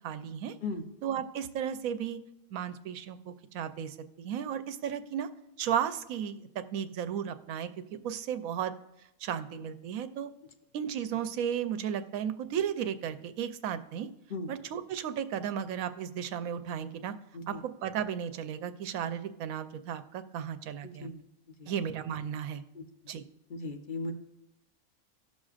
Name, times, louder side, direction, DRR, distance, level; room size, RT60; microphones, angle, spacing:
voice 1, 0.0-0.5 1.0-2.2 2.5-5.3 5.6-7.7 8.0-8.7 9.2-10.3 10.7-14.1 14.5-17.1 17.5-17.6 17.8-21.1 21.7-22.6 23.1-23.2, right 9 dB, 80° right, 10 dB, 1.0 m, -34 dB
voice 2, 20.8-21.2 21.6-21.7 22.7-22.8 23.5-24.1, left 3 dB, 45° left, 4 dB, 0.7 m, -37 dB
17.0 x 6.3 x 2.4 m, 0.86 s
omnidirectional pair, 1.5 m